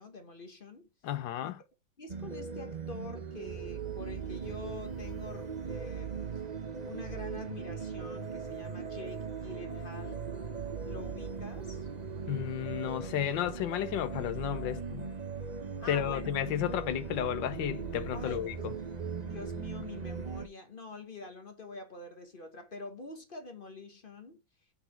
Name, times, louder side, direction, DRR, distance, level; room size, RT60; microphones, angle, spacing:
voice 1, 0.0-0.9 1.4-1.5 2.0-6.2 6.8-10.3 10.9-11.9 15.8-16.3 18.1-18.7 19.2-24.4, left 3 dB, 35° left, 0.9 m, -46 dB
voice 2, 1.0-1.6 12.3-15.1 15.9-18.7, left 11 dB, 80° left, 1.5 m, -33 dB
sound 1, 2.1-20.5, right 6 dB, 60° right, 0.4 m, -39 dB
5.7 x 3.9 x 5.8 m
omnidirectional pair, 2.0 m